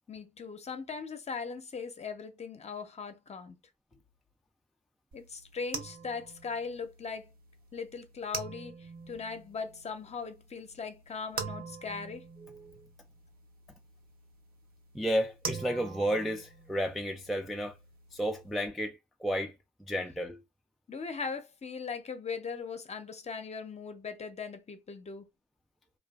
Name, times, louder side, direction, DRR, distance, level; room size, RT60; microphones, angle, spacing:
voice 1, 0.1-3.6 5.1-7.3 7.7-12.3 20.9-25.3, left 5 dB, 35° left, 0.6 m, -39 dB
sound 1, 5.1-18.7, right 5 dB, 50° right, 0.6 m, -45 dB
voice 2, 12.4-12.8 14.9-17.7 18.1-19.5 19.9-20.4, equal, ahead, 0.3 m, -32 dB
2.4 x 2.3 x 2.3 m
cardioid pair, 90°, 20 cm